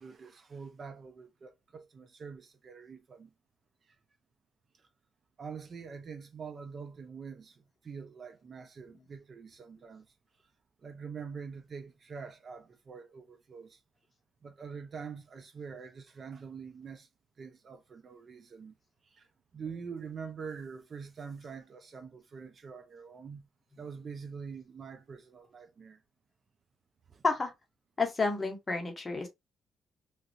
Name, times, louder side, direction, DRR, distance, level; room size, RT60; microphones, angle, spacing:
voice 1, 0.0-3.3 5.4-10.1 10.8-13.8 14.4-17.1 17.4-18.7 19.1-19.3 19.5-23.5 23.8-26.0 27.1-27.2, right 5 dB, 45° right, 0.5 m, -45 dB
voice 2, 28.0-29.3, left 3 dB, 25° left, 1.0 m, -30 dB
3.1 x 2.4 x 2.6 m
cardioid pair, 90°, 0 cm